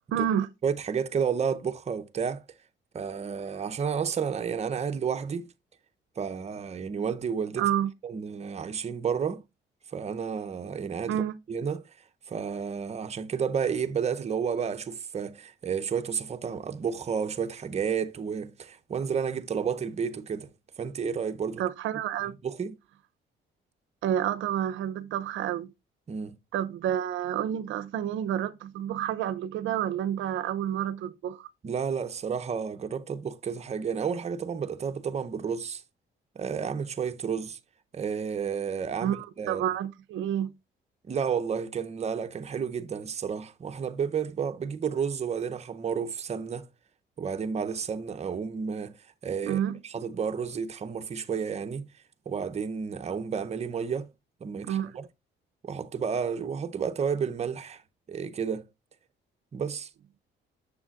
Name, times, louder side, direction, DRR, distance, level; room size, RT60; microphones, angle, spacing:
voice 1, 0.1-0.5 7.6-7.9 11.1-11.3 21.6-22.3 24.0-25.7 26.5-31.5 39.0-40.5 49.4-49.8 54.6-54.9, right 10 dB, 80° right, 0.5 m, -29 dB
voice 2, 0.6-2.4 2.9-5.5 6.2-7.7 8.0-9.4 9.9-11.2 11.5-11.8 12.3-20.5 20.8-21.6 22.4-22.8 26.1-26.4 31.6-35.8 36.3-37.6 37.9-39.6 41.0-46.7 47.2-51.9 52.3-54.1 54.4-55.1 55.6-57.8 58.1-58.7 59.5-59.9, right 6 dB, 35° right, 0.6 m, -31 dB
7.1 x 6.5 x 2.3 m
cardioid pair, 90°, 20 cm